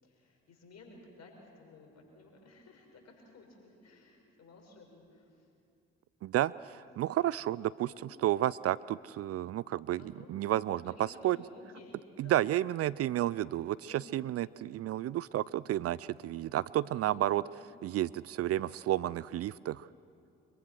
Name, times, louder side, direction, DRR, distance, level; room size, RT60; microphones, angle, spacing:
voice 1, 0.0-5.5 7.8-8.2 10.0-10.3 10.7-12.4 12.8-12.9 13.8-14.2 16.9-17.7, left 3 dB, 55° left, 0 dB, 6.3 m, -55 dB
voice 2, 6.2-10.0 10.3-10.8 11.2-11.4 12.2-17.4 17.8-19.9, right 13 dB, 50° right, 20 dB, 0.5 m, -31 dB
24.5 x 22.5 x 6.3 m, 2.5 s
hypercardioid pair, 45°, 32 cm